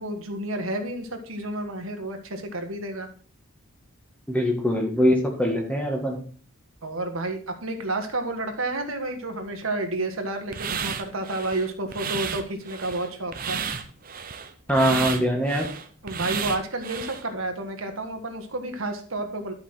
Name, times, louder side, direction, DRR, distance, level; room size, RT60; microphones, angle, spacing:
voice 1, 0.0-3.1 6.8-13.6 16.0-19.5, right 2 dB, 75° right, 5 dB, 1.6 m, -30 dB
voice 2, 4.3-6.2 14.7-15.7, equal, 5° left, 1 dB, 1.7 m, -22 dB
sound 1, 10.5-17.2, right 6 dB, 40° right, 0.7 m, -32 dB
11.0 x 5.7 x 4.4 m, 0.41 s
head